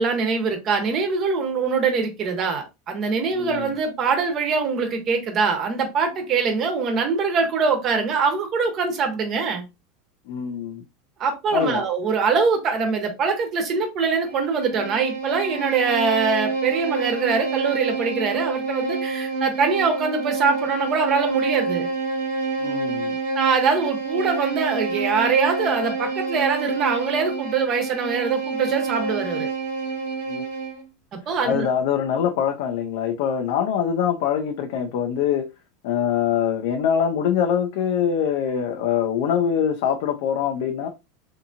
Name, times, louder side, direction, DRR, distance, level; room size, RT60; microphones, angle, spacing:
voice 1, 0.0-9.6 11.2-21.9 23.3-29.5 31.1-31.7, right 5 dB, 40° right, 0.9 m, -23 dB
voice 2, 3.3-3.7 10.3-10.8 11.5-11.8 22.6-23.2 30.3-30.5 31.4-35.5 35.8-40.9, left 8 dB, 70° left, 0.4 m, -23 dB
Bowed string instrument, 14.2-30.9, right 4 dB, 90° right, 1.1 m, -28 dB
2.8 x 2.6 x 2.4 m
supercardioid pair, 115°, 0 cm